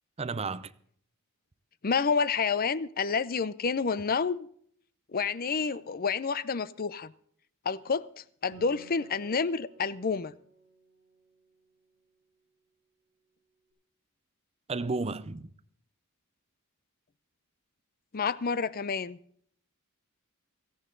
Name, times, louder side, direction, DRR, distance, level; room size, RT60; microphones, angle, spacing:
voice 1, 0.2-0.7 14.7-15.5, right 3 dB, 30° right, 0.6 m, -32 dB
voice 2, 1.8-4.5 5.1-7.1 7.7-8.1 8.4-10.3 18.1-19.2, left 5 dB, 40° left, 0.6 m, -29 dB
Acoustic guitar, 8.5-12.2, right 1 dB, 55° right, 6.8 m, -55 dB
17.5 x 14.5 x 3.9 m
head